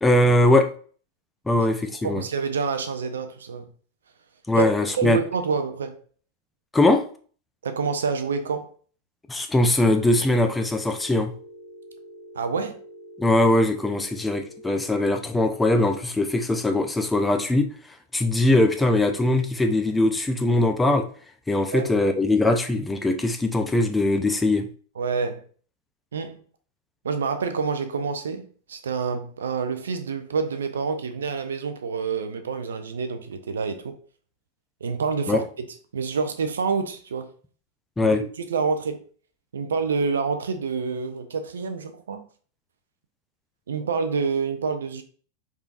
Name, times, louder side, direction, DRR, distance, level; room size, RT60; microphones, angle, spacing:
voice 1, 0.0-0.7 1.5-2.2 4.5-5.2 6.7-7.0 9.3-11.3 13.2-17.7 18.1-21.1 21.5-24.7 35.3-35.4 38.0-38.2, left 2 dB, 10° left, 0.5 m, -21 dB
voice 2, 2.0-3.7 4.6-4.7 5.0-6.0 7.6-8.7 12.4-12.8 21.7-21.9 25.0-25.4 26.1-26.4 27.0-33.9 34.8-35.7 35.9-37.3 38.0-39.0 39.5-42.2 43.7-45.0, right 5 dB, 65° right, 0.5 m, -27 dB
Telephone, 9.8-14.8, equal, 70° left, 1.3 m, -45 dB
4.5 x 3.6 x 2.4 m
figure-of-eight pair, 90°, 0 cm